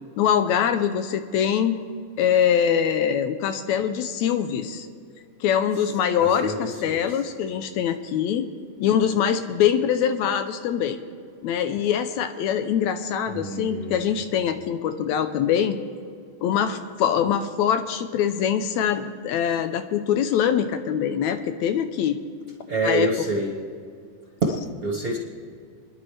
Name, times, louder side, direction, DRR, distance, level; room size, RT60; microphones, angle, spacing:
voice 1, 0.2-1.8 2.2-4.9 5.4-8.5 8.8-11.0 11.4-15.8 16.4-22.2 22.8-23.1, left 8 dB, 80° left, 9 dB, 1.9 m, -23 dB
voice 2, 6.2-7.0 13.3-14.2 22.7-23.5 24.4-25.2, right 2 dB, 40° right, -1 dB, 1.4 m, -27 dB
30.0 x 10.5 x 3.3 m, 2.2 s
omnidirectional pair, 3.4 m